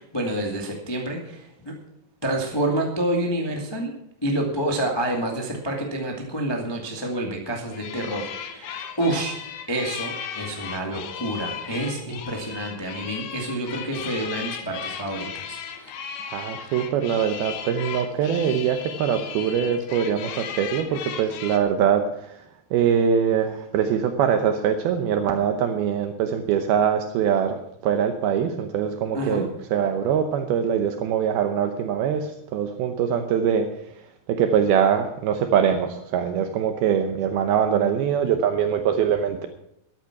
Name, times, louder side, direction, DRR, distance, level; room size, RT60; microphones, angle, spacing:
voice 1, 0.0-1.7 2.2-3.9 4.2-9.3 9.7-15.9 29.1-29.5, right 1 dB, 30° left, 0 dB, 0.4 m, -28 dB
sound 1, 7.7-21.6, left 8 dB, 80° left, 3.4 m, -36 dB
voice 2, 16.3-22.4 22.7-33.7 34.3-39.5, right 8 dB, 75° right, 7 dB, 2.6 m, -23 dB
13.5 x 11.0 x 5.9 m, 0.77 s
omnidirectional pair, 4.8 m